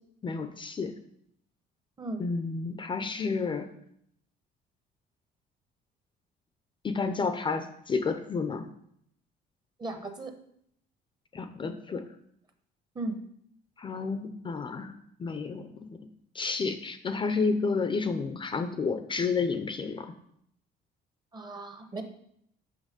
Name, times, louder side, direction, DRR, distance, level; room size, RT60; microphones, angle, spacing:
voice 1, 0.2-1.0 2.2-3.7 6.8-8.7 11.3-12.1 13.8-14.9 15.2-16.0 16.3-20.1, left 4 dB, 25° left, 8 dB, 0.5 m, -31 dB
voice 2, 9.8-10.3 12.9-13.2 21.3-22.0, right 2 dB, 25° right, 7 dB, 0.9 m, -36 dB
6.4 x 5.6 x 5.1 m, 0.71 s
cardioid pair, 130°, 18 cm